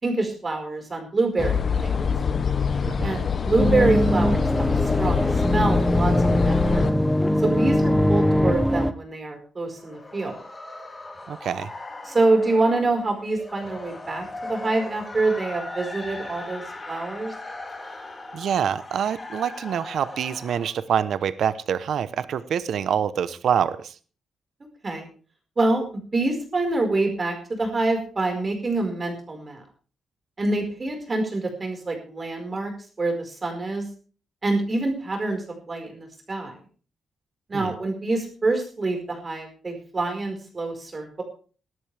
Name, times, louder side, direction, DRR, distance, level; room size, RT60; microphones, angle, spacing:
voice 1, 0.0-1.9 3.0-7.0 7.4-10.4 12.0-17.3 24.8-25.1 25.6-25.8 26.1-29.6 30.4-32.7 33.0-33.9 34.4-36.5 37.5-41.2, right 2 dB, 30° right, 4 dB, 4.9 m, -26 dB
sound 1, 1.4-6.9, left 6 dB, 40° left, 0.8 m, -25 dB
voice 2, 2.8-3.2 11.3-11.7 18.3-23.9 37.5-37.7, right 8 dB, 70° right, 14 dB, 0.9 m, -26 dB
sound 2, 3.6-8.9, equal, 5° left, 0.9 m, -21 dB
sound 3, 9.6-20.7, left 2 dB, 20° left, 3.0 m, -39 dB
18.5 x 12.5 x 3.4 m, 0.40 s
cardioid pair, 135°, 0 cm